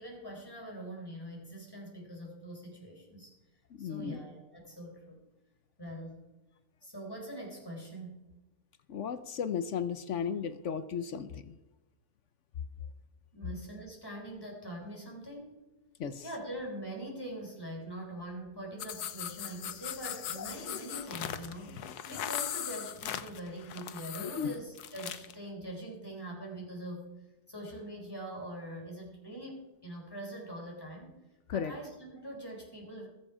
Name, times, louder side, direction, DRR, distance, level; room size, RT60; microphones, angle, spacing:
voice 1, 0.0-3.3 3.8-5.2 5.8-6.2 6.8-8.3 13.3-15.6 16.2-27.2 27.5-31.2 31.5-33.1, right 1 dB, 15° left, -1 dB, 4.5 m, -43 dB
voice 2, 3.7-4.2 8.9-11.5 16.0-16.2 20.4-20.5 24.2-24.5 31.5-31.7, left 7 dB, 60° left, 12 dB, 0.9 m, -35 dB
sound 1, 18.8-25.3, left 10 dB, 90° left, 1.4 m, -39 dB
21.0 x 7.4 x 4.9 m, 1.0 s
omnidirectional pair, 1.6 m